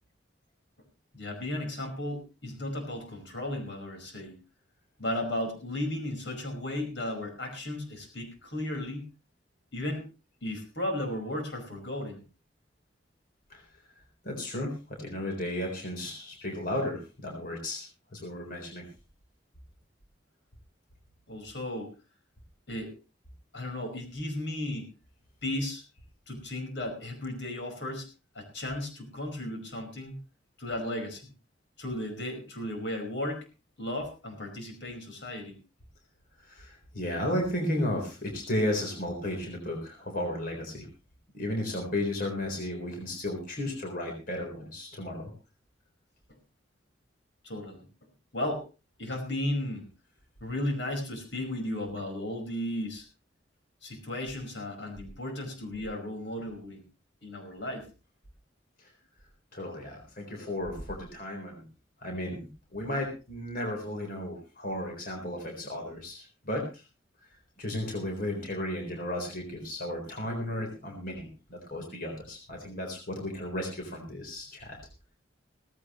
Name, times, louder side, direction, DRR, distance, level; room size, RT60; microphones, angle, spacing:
voice 1, 1.1-4.4 5.0-9.1 9.7-10.0 10.4-12.2 21.3-21.9 22.7-22.9 23.5-24.9 25.4-25.8 26.3-28.1 28.3-30.2 30.6-31.3 31.8-33.4 33.8-35.6 47.4-47.8 48.3-48.6 49.0-49.9 50.4-53.0 53.8-56.8 57.2-57.8 60.4-60.5, left 1 dB, 80° left, 3 dB, 5.1 m, -35 dB
voice 2, 14.2-17.9 18.1-18.9 36.4-40.9 41.3-45.3 58.8-58.9 59.5-61.6 62.0-66.8 67.6-74.8, left 1 dB, 50° left, 2 dB, 4.0 m, -34 dB
17.0 x 15.5 x 3.1 m, 0.31 s
head